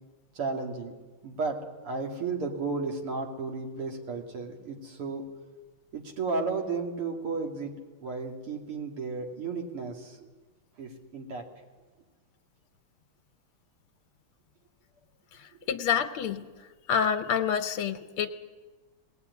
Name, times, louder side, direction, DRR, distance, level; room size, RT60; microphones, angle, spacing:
voice 1, 0.3-0.9 1.2-5.3 5.9-7.7 8.0-10.3 10.8-11.5, right 4 dB, 85° right, 2 dB, 3.6 m, -33 dB
voice 2, 15.7-16.4 16.9-18.3, left 7 dB, 80° left, 8 dB, 1.8 m, -27 dB
20.0 x 19.0 x 9.6 m, 1.3 s
omnidirectional pair, 2.4 m